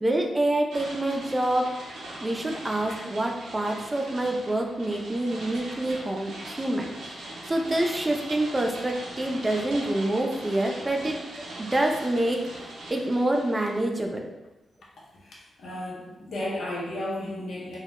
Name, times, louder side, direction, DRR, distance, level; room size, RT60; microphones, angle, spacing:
voice 1, 0.0-1.7 2.2-7.2 7.5-11.2 11.6-14.3, right 1 dB, 25° right, 2 dB, 0.4 m, -27 dB
sound 1, 0.7-13.8, right 1 dB, 85° right, 0.5 m, -41 dB
voice 2, 15.2-17.8, left 1 dB, 70° left, -4 dB, 0.6 m, -34 dB
2.2 x 2.0 x 2.9 m, 1.0 s
supercardioid pair, 45°, 0 cm